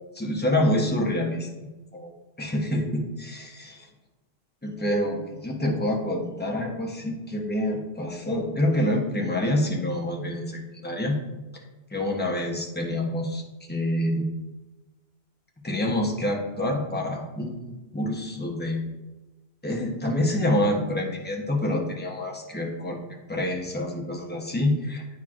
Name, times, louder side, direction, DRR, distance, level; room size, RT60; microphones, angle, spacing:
voice 1, 0.1-1.5 1.9-2.1 2.4-3.9 4.6-11.2 11.9-13.4 13.7-14.2 15.6-18.8 19.6-25.2, left 1 dB, 10° left, 0 dB, 0.8 m, -27 dB
8.9 x 4.4 x 2.5 m, 1.1 s
omnidirectional pair, 1.1 m